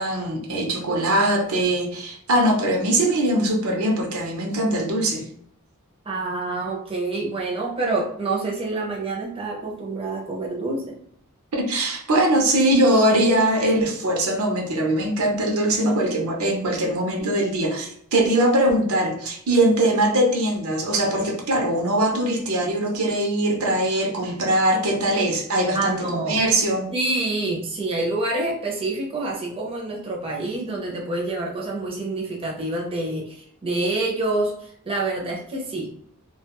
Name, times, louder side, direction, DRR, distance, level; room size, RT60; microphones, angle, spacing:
voice 1, 0.0-5.3 11.5-26.9, right 1 dB, 75° right, 1 dB, 0.6 m, -21 dB
voice 2, 6.1-11.0 25.7-26.4 26.9-35.9, right 2 dB, 25° right, -2 dB, 0.6 m, -27 dB
2.4 x 2.2 x 2.9 m, 0.65 s
head